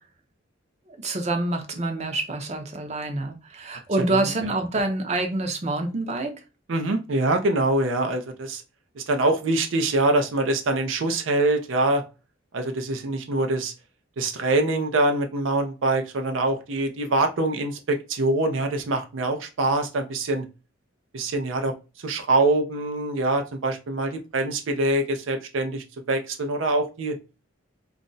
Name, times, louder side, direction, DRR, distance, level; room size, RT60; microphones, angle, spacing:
voice 1, 1.0-6.3, right 2 dB, 35° right, 0.6 m, -27 dB
voice 2, 4.0-4.5 6.7-8.6 9.0-12.0 12.5-13.7 14.2-20.4 21.1-27.2, right 2 dB, 75° right, 0.5 m, -24 dB
2.5 x 2.0 x 3.8 m
head